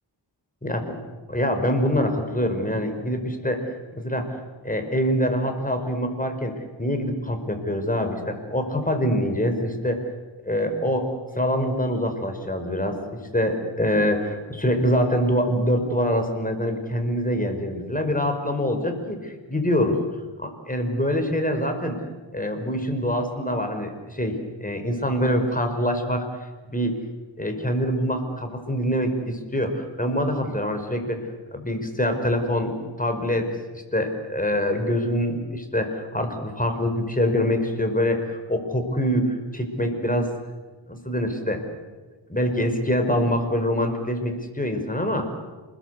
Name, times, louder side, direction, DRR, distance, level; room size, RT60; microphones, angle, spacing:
voice 1, 0.6-1.0 1.3-3.6 3.9-4.4 4.6-6.5 6.8-10.0 10.4-11.0 11.4-13.0 13.3-20.0 20.4-22.0 22.3-26.2 26.7-27.0 27.4-31.2 31.5-33.5 33.7-40.3 40.9-41.6 42.3-45.3, equal, 15° left, 5 dB, 5.1 m, -25 dB
28.0 x 21.0 x 8.2 m, 1.3 s
wide cardioid pair, 65°, 47 cm